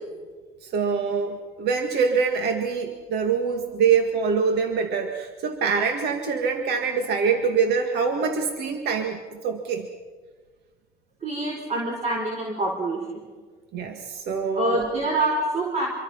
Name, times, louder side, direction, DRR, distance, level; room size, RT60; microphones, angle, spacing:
voice 1, 0.6-9.9 13.7-14.8, right 5 dB, 75° right, 5 dB, 2.0 m, -24 dB
voice 2, 11.2-13.3 14.5-15.9, right 2 dB, 40° right, -1 dB, 4.8 m, -26 dB
26.5 x 23.0 x 5.7 m, 1.5 s
cardioid pair, 110°, 17 cm